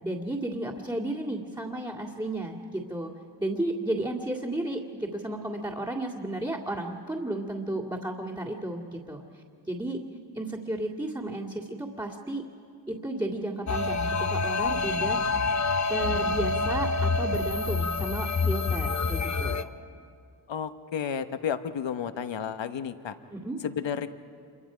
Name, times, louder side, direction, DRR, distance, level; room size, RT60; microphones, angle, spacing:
voice 1, 0.0-3.1 3.4-10.0 10.3-12.4 12.9-15.2 15.9-19.7 23.3-23.6, right 1 dB, 10° right, -4 dB, 2.1 m, -33 dB
sound 1, 13.7-19.6, left 4 dB, 35° left, 0.9 m, -27 dB
voice 2, 20.5-23.2 23.6-24.1, left 8 dB, 65° left, 11 dB, 1.0 m, -32 dB
27.0 x 23.5 x 5.0 m, 2.4 s
cardioid pair, 55°, 47 cm